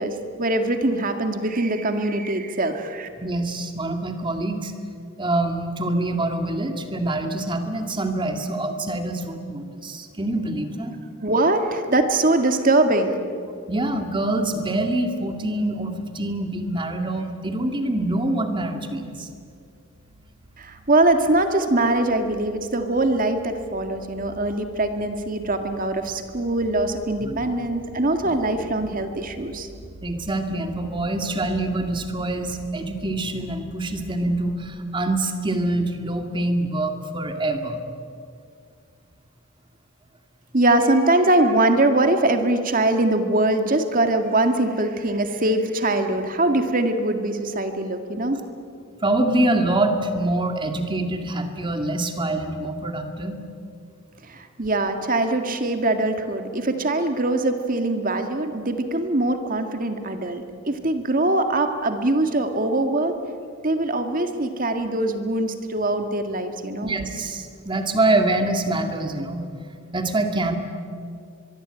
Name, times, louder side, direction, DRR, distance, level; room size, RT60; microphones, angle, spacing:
voice 1, 0.0-3.1 11.2-13.2 20.6-29.7 40.5-48.4 54.3-63.2 63.6-66.9, right 2 dB, 40° right, 7 dB, 2.0 m, -22 dB
voice 2, 3.2-4.7 5.2-11.0 13.7-19.3 27.2-27.4 30.0-37.8 49.0-53.4 66.8-69.5 69.9-70.6, right 2 dB, 25° right, 5 dB, 2.2 m, -25 dB
sound 1, 18.9-34.7, right 1 dB, 75° right, 3.1 m, -46 dB
23.5 x 23.0 x 9.1 m, 2.3 s
head